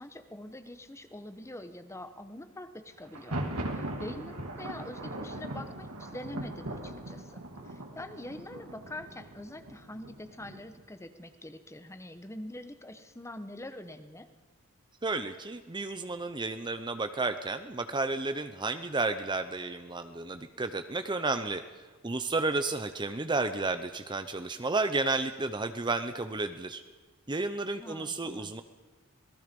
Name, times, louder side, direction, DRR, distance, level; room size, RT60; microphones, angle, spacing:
voice 1, 0.0-3.4 3.7-14.3 27.8-28.5, left 1 dB, 15° left, 10 dB, 1.2 m, -44 dB
Thunder, 3.0-10.8, right 1 dB, 85° right, 3.2 m, -39 dB
voice 2, 15.0-26.8 27.3-28.6, right 3 dB, 20° right, 9 dB, 0.7 m, -32 dB
27.0 x 19.0 x 5.3 m, 1.3 s
head